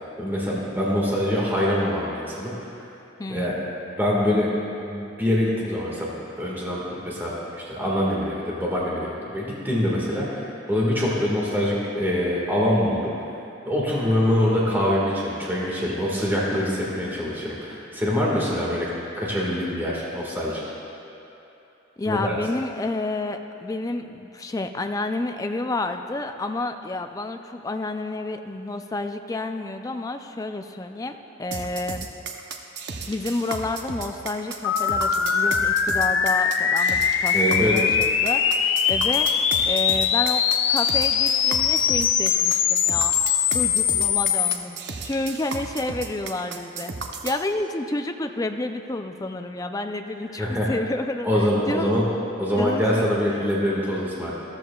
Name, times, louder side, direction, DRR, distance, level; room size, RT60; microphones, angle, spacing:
voice 1, 0.0-2.5 3.3-3.6 3.9-4.5 4.8-7.3 7.7-10.4 10.7-13.1 13.7-18.9 19.1-20.6 22.0-22.3 37.3-37.7 50.4-50.7 51.2-52.0 52.4-54.3, left 1 dB, 10° right, -6 dB, 1.7 m, -24 dB
voice 2, 3.2-3.7 22.0-32.1 33.1-37.4 37.6-40.4 40.7-43.1 43.5-46.9 47.2-52.1 52.5-53.5, left 2 dB, 20° left, 6 dB, 0.4 m, -30 dB
sound 1, 31.5-47.4, right 4 dB, 60° right, 0.7 m, -34 dB
sound 2, 34.6-44.5, left 7 dB, 70° left, 0.5 m, -22 dB
14.0 x 13.5 x 2.3 m, 2.8 s
head